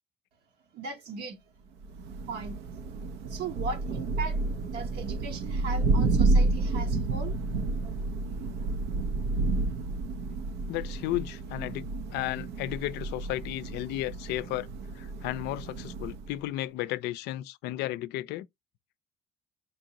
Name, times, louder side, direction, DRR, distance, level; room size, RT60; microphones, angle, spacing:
voice 1, 0.7-1.4 2.3-2.6 3.3-4.4 4.7-7.3, right 4 dB, 70° right, 1.0 m, -38 dB
Thunder, 1.8-16.4, right 3 dB, 85° right, 0.6 m, -30 dB
voice 2, 10.7-11.9 12.1-14.7 15.0-18.5, left 15 dB, 85° left, 0.4 m, -33 dB
4.4 x 2.6 x 2.8 m
cardioid pair, 110°, 17 cm